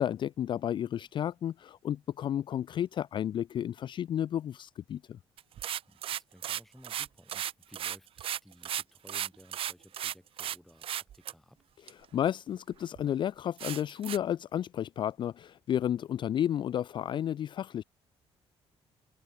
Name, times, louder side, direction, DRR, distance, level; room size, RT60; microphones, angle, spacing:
voice 1, 0.0-5.2 11.9-17.8, left 10 dB, 45° left, 0.4 m, -32 dB
sound 1, 5.4-10.6 10.8-11.3 11.9-12.0 12.5-12.6 13.0-13.1 13.6-14.2, right 10 dB, 55° right, 1.0 m, -35 dB
voice 2, 5.9-11.6, equal, ahead, 7.1 m, -57 dB
cardioid pair, 130°, 11 cm